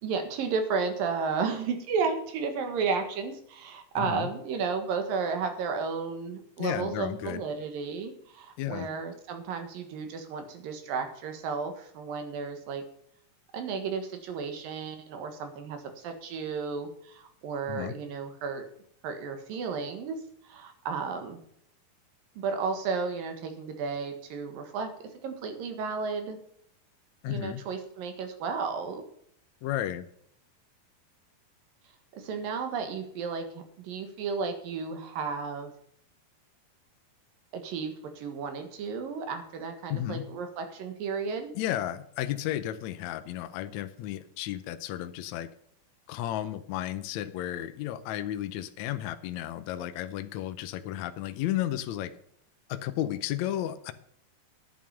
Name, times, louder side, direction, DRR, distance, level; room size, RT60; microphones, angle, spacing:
voice 1, 0.0-12.8 13.5-18.6 19.0-20.2 20.4-21.4 22.4-24.9 25.2-26.4 27.3-29.1 32.1-35.7 37.5-41.5, right 5 dB, 80° right, 7 dB, 3.3 m, -33 dB
voice 2, 4.0-4.3 6.6-7.4 8.6-8.9 17.7-17.9 27.2-27.6 29.6-30.0 39.9-40.3 41.5-45.5 46.1-52.1 52.7-53.9, left 12 dB, 75° left, 10 dB, 1.7 m, -33 dB
10.5 x 9.3 x 5.7 m, 0.67 s
omnidirectional pair, 4.0 m